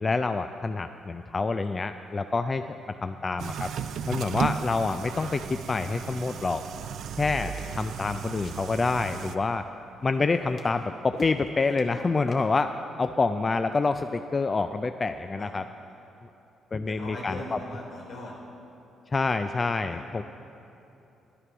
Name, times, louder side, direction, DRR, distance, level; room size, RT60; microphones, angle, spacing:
voice 1, 0.0-2.6 3.0-3.7 4.1-6.6 7.2-9.6 10.0-15.7 16.7-17.6 19.1-20.2, left 3 dB, 30° left, 9 dB, 0.3 m, -27 dB
sound 1, 3.4-9.4, right 8 dB, 70° right, 0.4 m, -35 dB
sound 2, 7.0-7.7 8.4-9.6 10.0-10.9 11.1-12.0 12.3-12.4, left 3 dB, 50° left, 1.2 m, -44 dB
voice 2, 16.9-18.3 19.8-20.2, left 1 dB, 70° left, -2 dB, 3.3 m, -40 dB
11.0 x 9.9 x 6.1 m, 2.9 s
cardioid pair, 90°, 0 cm